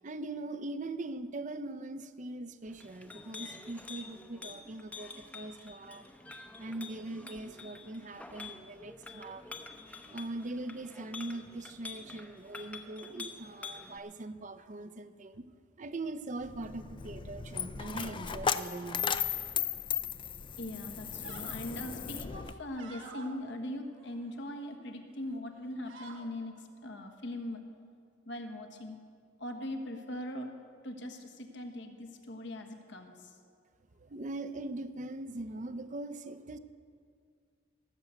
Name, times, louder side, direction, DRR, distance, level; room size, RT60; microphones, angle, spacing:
voice 1, 0.0-6.1 6.6-9.5 9.7-15.5 15.8-19.2 34.0-36.6, right 2 dB, 40° right, 12 dB, 0.6 m, -41 dB
Chink clink, 2.6-14.0, left 4 dB, 5° left, 0.7 m, -48 dB
Coin (dropping), 16.4-22.5, left 7 dB, 25° left, 0.4 m, -36 dB
sound 1, 20.2-20.5 20.9-21.6 22.1-23.3 23.9-24.7 25.2-25.4 25.6-26.3, right 3 dB, 65° right, 1.5 m, -51 dB
voice 2, 20.6-27.6 28.2-29.0 29.4-30.5 30.8-33.4, left 1 dB, 65° left, 5 dB, 1.3 m, -41 dB
17.5 x 6.8 x 8.1 m, 2.1 s
head